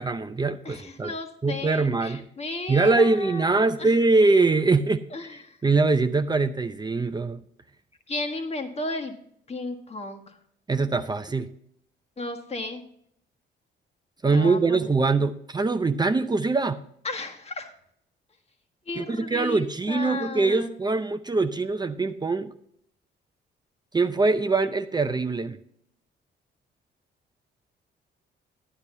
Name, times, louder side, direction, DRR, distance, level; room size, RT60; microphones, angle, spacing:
voice 1, 0.0-1.1 1.4-2.2 2.7-5.0 5.6-7.4 10.7-11.5 14.2-16.8 19.0-22.5 23.9-25.6, right 3 dB, 20° right, 0.6 m, -23 dB
voice 2, 0.6-3.9 5.1-5.6 8.1-9.2 9.5-10.4 12.2-12.8 14.3-14.9 17.0-17.7 18.9-20.8, left 2 dB, 30° left, 1.6 m, -34 dB
12.0 x 9.7 x 2.7 m
cardioid pair, 90°, 20 cm